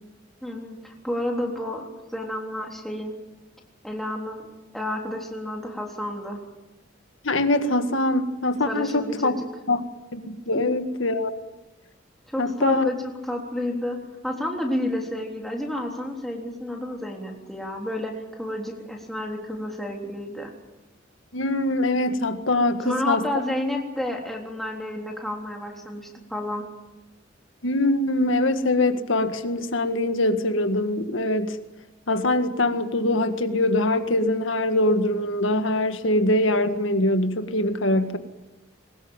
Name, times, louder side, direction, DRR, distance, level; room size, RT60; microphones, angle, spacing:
voice 1, 0.4-3.1 3.8-6.4 8.7-9.5 12.3-14.0 14.2-20.5 22.8-26.7, left 1 dB, ahead, 0 dB, 3.6 m, -30 dB
voice 2, 7.2-9.3 9.7-9.8 10.1-11.4 12.4-12.9 21.3-23.2 27.6-31.6 32.1-38.2, left 1 dB, 75° left, 9 dB, 1.8 m, -23 dB
22.5 x 20.0 x 9.0 m, 1.1 s
head